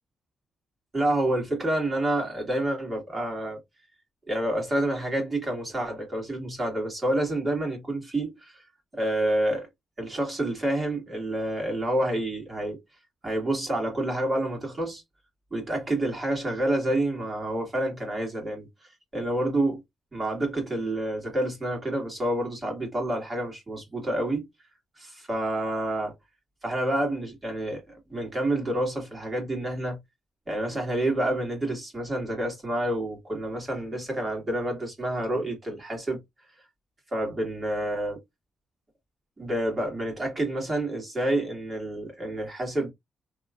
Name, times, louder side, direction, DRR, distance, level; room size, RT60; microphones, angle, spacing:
voice 1, 0.9-3.6 4.3-8.6 8.9-9.7 10.0-12.8 13.2-15.0 15.5-18.7 19.1-19.8 20.1-24.5 25.0-26.1 26.6-30.0 30.5-36.2 37.1-38.2 39.4-42.9, right 1 dB, 30° right, 1.9 m, -28 dB
3.1 x 3.0 x 2.4 m
cardioid pair, 90°, 0 cm